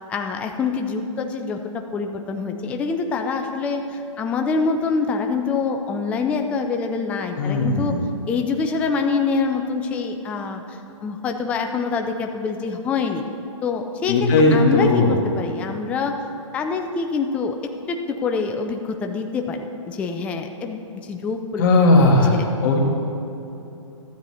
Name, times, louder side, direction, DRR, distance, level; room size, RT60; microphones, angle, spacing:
voice 1, 0.1-7.9 8.3-13.2 13.6-16.2 16.5-17.6 17.9-21.7 21.9-22.5, left 4 dB, 10° left, 4 dB, 0.3 m, -25 dB
voice 2, 7.4-8.0 14.1-15.2 21.6-22.8, left 2 dB, 35° left, 0 dB, 1.5 m, -17 dB
12.5 x 8.1 x 4.2 m, 3.0 s
hypercardioid pair, 145°, 17 cm